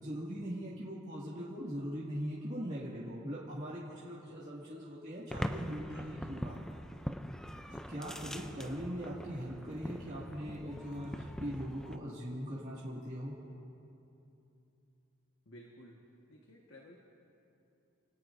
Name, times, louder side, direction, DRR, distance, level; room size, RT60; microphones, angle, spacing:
voice 1, 0.0-6.7 7.7-13.4, equal, 35° right, -7 dB, 2.0 m, -41 dB
sound 1, 5.3-12.0, equal, 5° left, 0.4 m, -42 dB
voice 2, 15.4-16.0 16.3-17.0, equal, 65° left, -1 dB, 1.5 m, -54 dB
28.5 x 18.0 x 2.6 m, 2.8 s
head